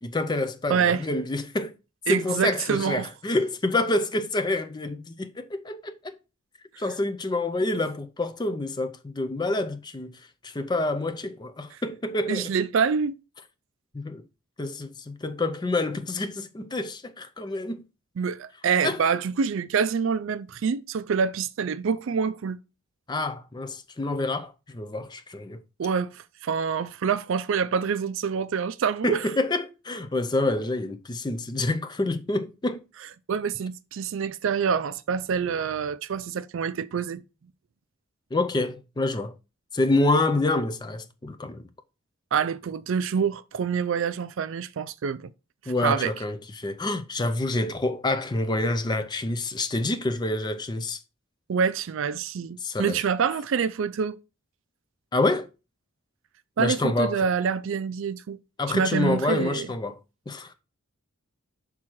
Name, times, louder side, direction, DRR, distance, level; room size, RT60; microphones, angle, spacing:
voice 1, 0.0-1.7 2.1-6.2 6.8-12.5 13.9-14.2 14.6-17.8 18.8-19.0 23.1-25.6 29.0-32.8 38.3-39.3 39.7-41.7 45.7-51.0 52.6-53.0 55.1-55.5 56.6-57.2 58.6-60.0 60.3-60.5, left 2 dB, 20° left, 0.4 m, -27 dB
voice 2, 0.7-1.0 2.1-3.1 12.3-13.2 18.2-22.6 25.8-29.3 33.3-37.2 42.3-45.3 45.8-46.1 51.5-54.2 56.6-58.4 58.7-59.7, right 6 dB, 60° right, 0.4 m, -26 dB
6.0 x 3.6 x 4.5 m
head